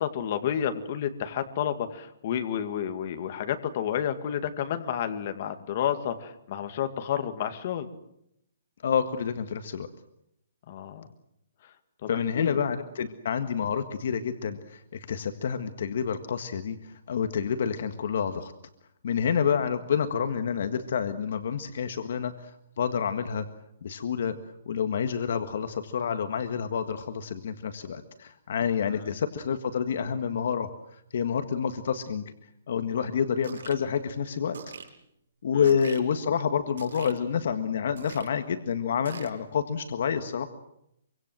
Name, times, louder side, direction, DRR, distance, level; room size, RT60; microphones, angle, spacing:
voice 1, 0.0-7.9 10.7-11.1 12.0-12.6 28.9-29.1, left 9 dB, 35° left, 8 dB, 2.2 m, -30 dB
voice 2, 8.8-9.9 12.1-18.5 19.0-23.5 23.8-24.3 24.6-32.2 32.7-34.6 35.4-40.5, left 7 dB, 50° left, 8 dB, 1.7 m, -28 dB
sound 1, 33.4-33.7 34.5-34.9 35.6-36.0 36.8-37.2 38.0-38.3 39.1-39.3, right 6 dB, 85° right, 6.9 m, -42 dB
25.5 x 25.0 x 7.8 m, 0.76 s
hypercardioid pair, 175°, 0 cm